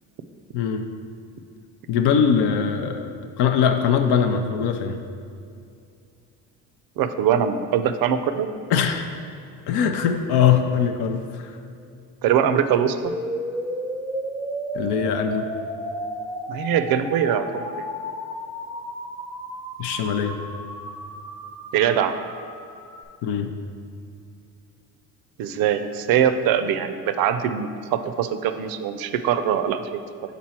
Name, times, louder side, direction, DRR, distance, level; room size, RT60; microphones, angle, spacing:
voice 1, 0.5-0.9 1.9-3.1 3.4-5.0 8.7-9.0 9.7-11.5 14.7-15.5 19.8-20.4 23.2-23.5, left 7 dB, 80° left, 6 dB, 0.7 m, -21 dB
voice 2, 7.0-8.5 12.2-13.1 16.5-17.9 21.7-22.1 25.4-30.0, right 8 dB, 65° right, 10 dB, 0.5 m, -22 dB
sound 1, 13.1-23.1, right 1 dB, 5° left, 0.6 m, -33 dB
6.0 x 4.0 x 4.3 m, 2.5 s
cardioid pair, 95°, 39 cm